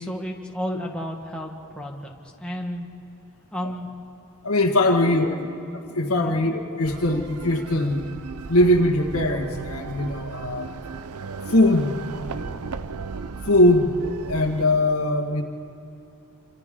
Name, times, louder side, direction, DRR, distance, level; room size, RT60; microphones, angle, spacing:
voice 1, 0.0-2.9 3.5-3.9 4.9-5.5 6.1-6.4, equal, 5° left, 0 dB, 1.5 m, -32 dB
voice 2, 4.4-5.3 5.9-8.1 8.5-10.7 11.5-12.0 12.6-12.7 13.5-13.9 14.3-15.4, left 1 dB, 70° left, 4 dB, 1.8 m, -21 dB
sound 1, 6.8-14.7, right 5 dB, 75° right, 0.7 m, -35 dB
27.0 x 25.5 x 3.8 m, 2.9 s
head